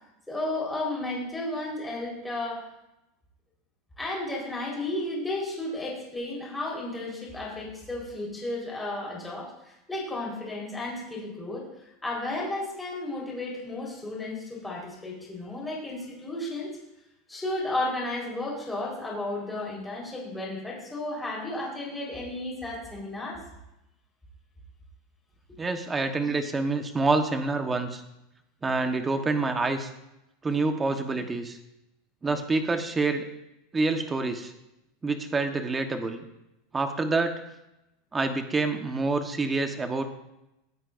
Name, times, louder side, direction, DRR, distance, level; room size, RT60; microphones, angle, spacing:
voice 1, 0.3-2.7 4.0-16.8 17.3-23.4, left 2 dB, 5° left, -4 dB, 4.4 m, -33 dB
voice 2, 25.6-28.0 28.6-29.9 30.4-31.6 32.2-33.2 33.7-34.5 35.0-36.2 36.7-37.4 38.1-40.0, right 3 dB, 15° right, 6 dB, 1.2 m, -27 dB
19.0 x 13.5 x 2.6 m, 0.89 s
supercardioid pair, 160°, 0 cm